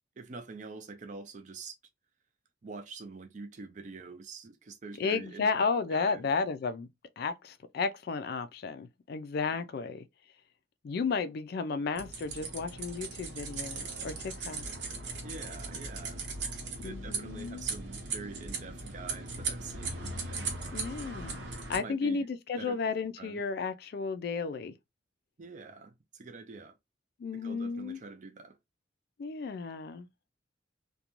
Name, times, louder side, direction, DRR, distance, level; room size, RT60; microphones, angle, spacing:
voice 1, 0.2-1.8 2.6-6.3 15.2-16.5 16.8-20.6 21.8-22.3 22.6-22.9 23.2-23.4 25.4-26.8 27.3-28.6, right 4 dB, 40° right, 0.4 m, -45 dB
voice 2, 5.0-6.9 7.2-10.1 10.8-14.7 16.8-17.7 20.7-21.4 21.7-24.7 27.2-28.0 29.2-30.1, left 5 dB, 55° left, 0.3 m, -33 dB
sound 1, 12.0-21.8, right 4 dB, 70° right, 0.8 m, -38 dB
2.5 x 2.2 x 2.9 m
head